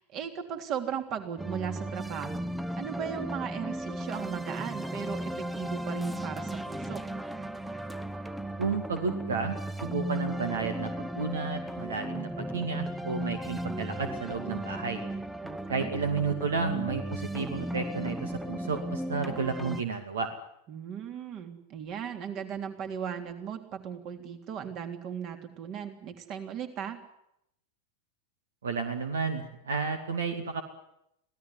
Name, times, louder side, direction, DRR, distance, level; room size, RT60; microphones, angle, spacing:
voice 1, 0.0-7.0 15.4-15.9 20.7-27.0, right 8 dB, 35° right, 6 dB, 3.3 m, -37 dB
sound 1, 1.4-19.8, right 1 dB, 5° right, 1.0 m, -35 dB
voice 2, 8.6-15.0 15.7-20.3 28.6-30.6, right 5 dB, 65° right, 7 dB, 2.4 m, -32 dB
26.0 x 17.0 x 9.8 m, 0.80 s
figure-of-eight pair, 90°, 0 cm